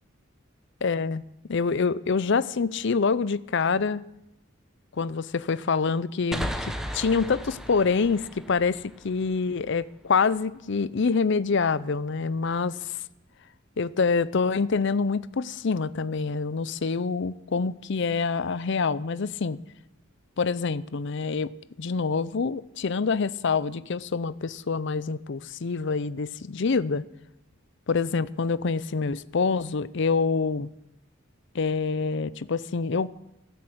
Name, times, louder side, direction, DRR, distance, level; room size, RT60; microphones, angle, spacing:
voice 1, 0.8-1.2 1.5-4.0 5.0-13.0 13.8-19.6 20.4-21.5 21.8-27.0 27.9-30.7 31.5-33.1, left 4 dB, 60° left, 0.6 m, -26 dB
sound 1, 6.3-9.8, equal, ahead, 1.1 m, -36 dB
16.5 x 10.0 x 7.9 m
head